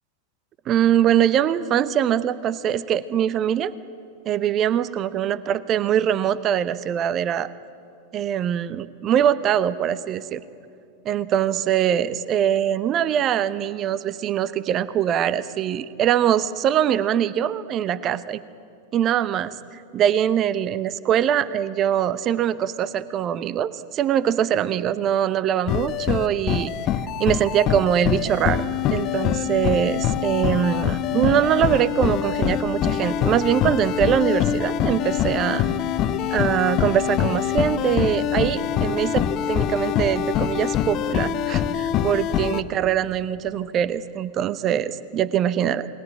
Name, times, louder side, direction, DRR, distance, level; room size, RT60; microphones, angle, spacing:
voice 1, 0.7-3.7 4.3-7.5 8.1-10.4 11.0-18.4 18.9-26.7 27.2-28.6 28.9-35.6 36.3-45.9, right 10 dB, 30° right, 16 dB, 0.9 m, -22 dB
sound 1, 25.7-42.6, left 10 dB, 35° left, 1.0 m, -24 dB
28.5 x 20.5 x 9.9 m, 2.5 s
figure-of-eight pair, 90°, 0 cm